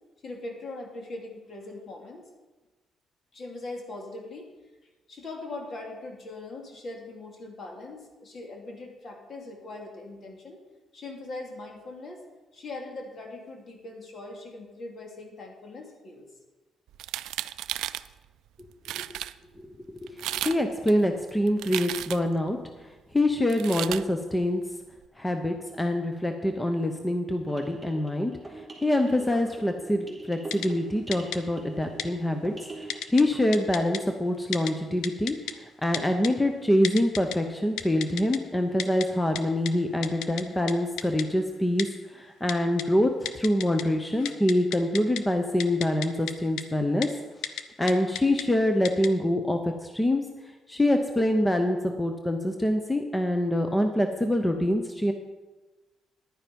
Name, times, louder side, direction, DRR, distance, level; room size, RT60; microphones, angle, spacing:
voice 1, 0.2-2.3 3.3-4.5 5.1-10.6 10.9-12.2 12.5-16.3, left 2 dB, 50° left, 2 dB, 2.5 m, -40 dB
sound 1, 16.9-18.1 18.6-18.7 18.8-19.3 20.1-20.6 20.9-22.4 23.5-24.0, right 13 dB, 85° right, 0.3 m, -33 dB
voice 2, 20.0-22.6 23.1-24.6 25.2-28.3 28.8-32.5 33.1-35.4 35.8-41.9 42.1-47.1 47.8-50.2 50.7-55.1, left 1 dB, 15° left, 5 dB, 0.9 m, -25 dB
sound 2, 27.4-33.7, right 3 dB, 5° right, 3.5 m, -44 dB
Typing, 30.5-30.7 31.1-31.4 32.0-32.1 32.9-33.2 33.5-34.0 34.5-34.7 35.0-35.5 35.9-36.3 36.8-37.4 37.8-38.4 38.8-39.1 39.4-39.5 39.7-39.8 40.0-40.4 40.7-40.8 41.0-41.2 41.8-41.9 42.5-42.8 43.3-43.8 44.1-45.2 45.6-46.3 46.6-46.7 47.0-47.1 47.4-47.6 47.9-48.4 48.8-49.1, left 10 dB, 85° left, 0.7 m, -32 dB
10.5 x 9.7 x 5.3 m, 1.2 s
cardioid pair, 90°, 0 cm